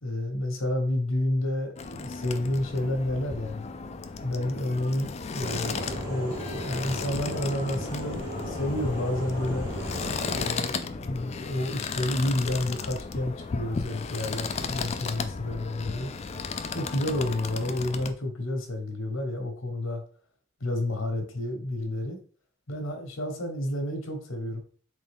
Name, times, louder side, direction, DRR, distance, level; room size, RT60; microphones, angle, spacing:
voice 1, 0.0-3.7 4.2-9.7 10.3-16.1 16.7-20.0 20.6-22.2 22.7-24.6, left 1 dB, 80° left, 4 dB, 1.2 m, -30 dB
sound 1, 1.8-18.1, left 4 dB, 30° left, 0.3 m, -35 dB
sound 2, 5.4-10.5, equal, 15° right, 1.9 m, -35 dB
3.8 x 3.5 x 3.5 m, 0.43 s
head